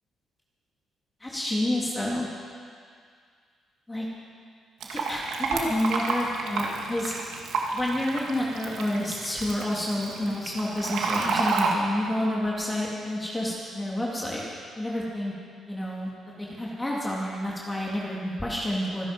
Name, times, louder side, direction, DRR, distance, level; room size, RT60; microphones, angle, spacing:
voice 1, 1.2-2.3 3.9-4.1 4.9-7.1 7.7-14.4 14.7-15.3 15.7-16.1 16.4-19.1, left 1 dB, 15° left, -4 dB, 3.1 m, -29 dB
Fill (with liquid), 4.8-11.7, right 4 dB, 75° right, 2.3 m, -30 dB
25.0 x 10.5 x 5.4 m, 2.1 s
cardioid pair, 90°, 0 cm